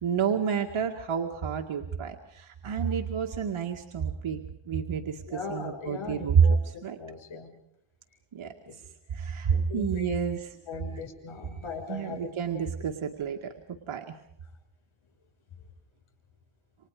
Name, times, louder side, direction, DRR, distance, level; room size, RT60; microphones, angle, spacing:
voice 1, 0.0-4.4 4.7-7.0 8.3-8.5 9.1-10.6 11.9-13.5 13.9-14.1, right 7 dB, 90° right, 2 dB, 2.2 m, -29 dB
voice 2, 5.3-7.6 8.7-8.8 9.5-10.1 10.7-12.3, left 5 dB, 75° left, 3 dB, 6.3 m, -39 dB
29.5 x 26.0 x 5.0 m, 0.72 s
wide cardioid pair, 145°, 48 cm